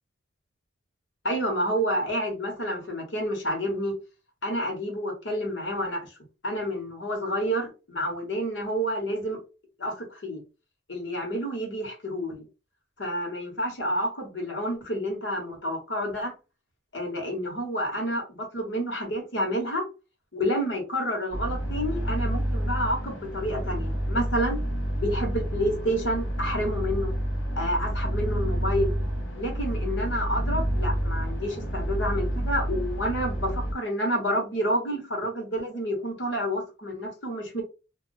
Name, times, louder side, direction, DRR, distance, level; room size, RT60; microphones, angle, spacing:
voice 1, 1.2-4.0 4.4-6.1 6.4-9.4 9.8-10.4 10.9-12.4 13.0-16.3 16.9-19.8 20.3-24.6 25.0-27.1 27.6-28.9 29.3-37.6, equal, 65° left, 1.2 m, -29 dB
sound 1, 21.3-33.7, equal, 85° left, 1.0 m, -29 dB
2.4 x 2.2 x 3.8 m
head